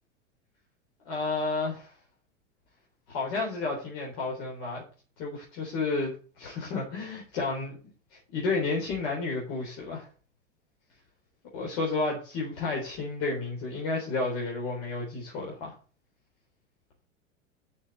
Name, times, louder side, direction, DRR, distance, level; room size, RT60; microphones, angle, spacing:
voice 1, 1.0-1.9 3.1-4.8 5.2-7.8 8.1-10.1 11.5-15.7, left 3 dB, 45° left, -2 dB, 4.0 m, -31 dB
7.0 x 6.7 x 7.6 m, 0.37 s
figure-of-eight pair, 90°, 39 cm